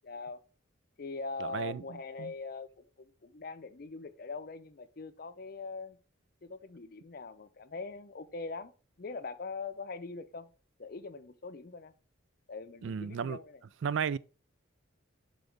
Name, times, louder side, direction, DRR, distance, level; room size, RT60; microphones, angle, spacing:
voice 1, 0.0-0.4 1.0-6.0 6.4-8.7 9.0-10.5 10.8-11.9 12.5-13.6, left 3 dB, 45° left, 0.5 m, -42 dB
voice 2, 1.4-1.8 2.2-2.3 12.8-13.4 13.8-14.2, right 7 dB, 65° right, 0.3 m, -33 dB
10.0 x 4.0 x 3.4 m
head